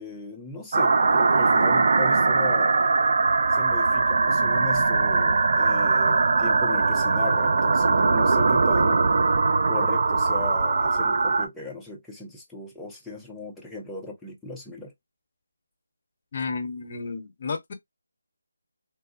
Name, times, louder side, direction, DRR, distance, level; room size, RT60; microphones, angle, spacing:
voice 1, 0.0-2.8 3.5-9.2 9.7-14.9, left 2 dB, 5° left, 0.5 m, -37 dB
sound 1, 0.7-11.5, right 3 dB, 50° right, 0.5 m, -21 dB
voice 2, 16.3-17.7, left 4 dB, 40° left, 0.7 m, -32 dB
3.3 x 2.0 x 2.5 m
figure-of-eight pair, 160°, 0 cm